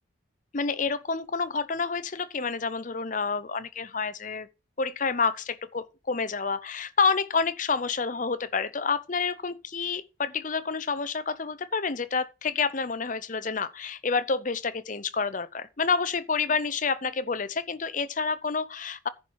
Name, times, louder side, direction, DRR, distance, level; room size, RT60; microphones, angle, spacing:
voice 1, 0.5-4.5 4.8-19.1, left 5 dB, 40° left, 0.7 m, -29 dB
10.5 x 4.6 x 7.3 m
head